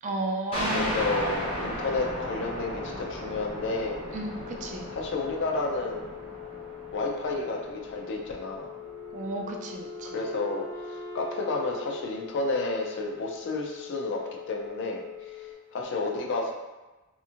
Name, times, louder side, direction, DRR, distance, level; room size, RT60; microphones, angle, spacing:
voice 1, 0.0-1.0 4.1-4.9 9.1-10.2, right 2 dB, 35° right, 2 dB, 0.3 m, -33 dB
sound 1, 0.5-9.7, equal, 25° left, 0.8 m, -36 dB
voice 2, 0.7-4.0 4.9-6.1 6.9-8.7 10.1-14.2 14.5-16.5, left 3 dB, 60° left, 0 dB, 0.4 m, -31 dB
Telephone, 2.4-15.5, left 16 dB, 90° left, 0.8 m, -43 dB
Wind instrument woodwind instrument, 8.8-13.3, right 3 dB, 70° right, 0.6 m, -44 dB
2.9 x 2.5 x 2.4 m, 1.2 s
head